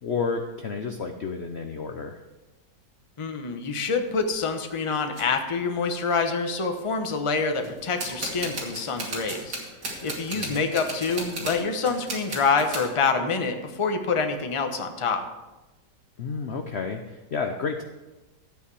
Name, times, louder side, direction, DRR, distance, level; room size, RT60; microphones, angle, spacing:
voice 1, 0.0-2.2 10.3-10.6 16.2-17.8, left 5 dB, 55° left, 5 dB, 0.8 m, -31 dB
voice 2, 3.2-9.6 10.0-15.2, left 4 dB, 25° left, 5 dB, 0.8 m, -26 dB
sound 1, 4.0-4.3 5.1-5.3 6.0-6.1 6.3-6.7 7.6-12.9, right 2 dB, 75° right, 3.1 m, -35 dB
13.0 x 8.6 x 4.8 m, 1.1 s
omnidirectional pair, 1.9 m